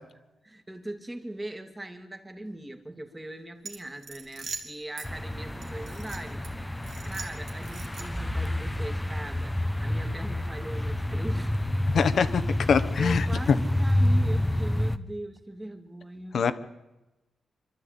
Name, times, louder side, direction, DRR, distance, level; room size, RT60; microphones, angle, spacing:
voice 1, 0.4-6.5 7.1-11.5 13.0-16.5, right 1 dB, 15° right, 6 dB, 2.4 m, -40 dB
sound 1, 3.6-5.1 5.6-6.5 6.8-8.3, right 5 dB, 70° right, 3.0 m, -42 dB
sound 2, 5.0-15.0, left 1 dB, 5° left, 1.0 m, -28 dB
voice 2, 11.9-12.4 12.7-13.6 16.3-16.5, left 6 dB, 60° left, 11 dB, 1.3 m, -23 dB
27.0 x 12.5 x 8.9 m, 1.0 s
cardioid pair, 105°, 0 cm